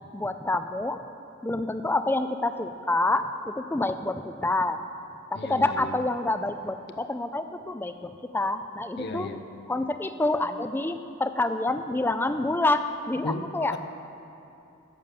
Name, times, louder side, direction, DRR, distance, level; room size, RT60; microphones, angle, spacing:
voice 1, 0.1-1.0 1.4-4.8 5.3-9.3 9.7-13.7, left 2 dB, 10° left, 10 dB, 0.3 m, -27 dB
voice 2, 5.3-5.7 9.0-9.4 13.2-13.8, left 2 dB, 55° left, 8 dB, 0.6 m, -34 dB
10.5 x 6.9 x 7.6 m, 2.8 s
head